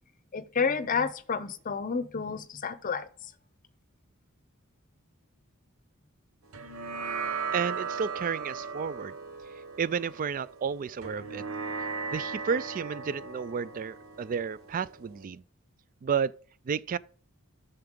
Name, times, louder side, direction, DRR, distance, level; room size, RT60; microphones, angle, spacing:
voice 1, 0.3-3.1, left 5 dB, 40° left, 0.6 m, -30 dB
sound 1, 6.5-15.2, right 5 dB, 80° right, 1.0 m, -37 dB
voice 2, 7.5-9.1 9.8-11.4 12.1-15.4 16.0-16.3 16.7-17.0, right 6 dB, 40° right, 0.3 m, -31 dB
10.5 x 6.8 x 3.7 m
head